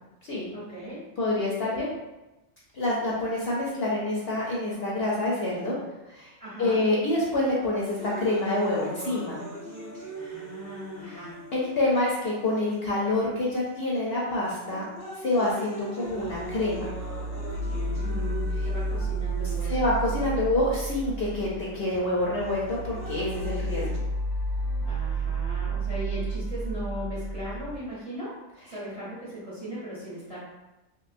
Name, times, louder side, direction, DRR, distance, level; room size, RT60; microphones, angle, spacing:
voice 1, 0.5-1.1 6.4-6.9 10.2-11.4 17.7-19.8 24.8-30.4, equal, 30° right, -8 dB, 0.7 m, -38 dB
voice 2, 1.2-1.9 2.7-5.8 6.1-6.3 6.6-9.4 11.5-14.8 15.2-16.9 19.7-23.8, left 2 dB, 60° left, -5 dB, 0.7 m, -27 dB
sound 1, 8.0-12.0 12.7-12.8 13.7-14.0 14.5-20.0 21.0-21.1 22.5-24.0, right 2 dB, 25° left, 0.3 m, -40 dB
sound 2, 16.0-27.7, right 2 dB, 80° left, 1.1 m, -31 dB
3.0 x 2.8 x 2.5 m, 1.0 s
omnidirectional pair, 1.5 m